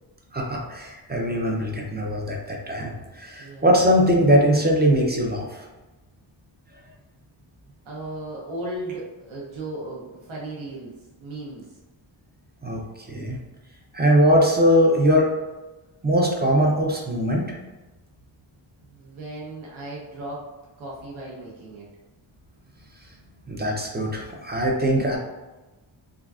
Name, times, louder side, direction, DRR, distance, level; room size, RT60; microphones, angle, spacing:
voice 1, 0.3-5.5 12.6-12.8 13.1-13.4 13.9-15.3 16.0-17.5 23.5-25.2, equal, 25° right, -1 dB, 0.3 m, -21 dB
voice 2, 7.9-11.7 18.9-20.5 20.8-21.9, right 1 dB, 80° right, -4 dB, 0.8 m, -36 dB
3.6 x 2.4 x 2.3 m, 1.1 s
wide cardioid pair, 165°, 48 cm